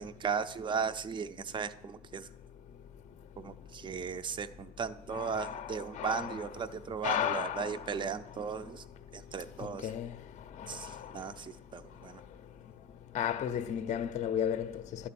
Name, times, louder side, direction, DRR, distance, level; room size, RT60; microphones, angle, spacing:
voice 1, 0.0-2.3 3.4-8.8 9.1-10.0 10.7-12.2, right 6 dB, 30° right, 0.5 m, -36 dB
voice 2, 5.1-5.7 6.0-6.3 7.0-7.7 9.8-10.1 13.1-14.7, left 9 dB, 45° left, 0.5 m, -32 dB
11.0 x 4.3 x 7.5 m
cardioid pair, 110°, 17 cm